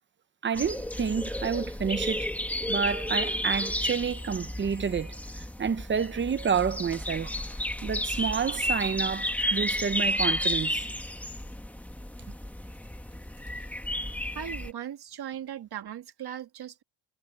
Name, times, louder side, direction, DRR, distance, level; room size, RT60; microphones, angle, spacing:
voice 1, 0.4-2.3 2.7-7.3 7.8-10.9, right 6 dB, 25° right, 0.6 m, -29 dB
sound 1, 0.5-14.7, left 1 dB, 5° left, 1.0 m, -32 dB
voice 2, 14.3-16.8, right 9 dB, 50° right, 1.9 m, -38 dB
cardioid pair, 170°, 47 cm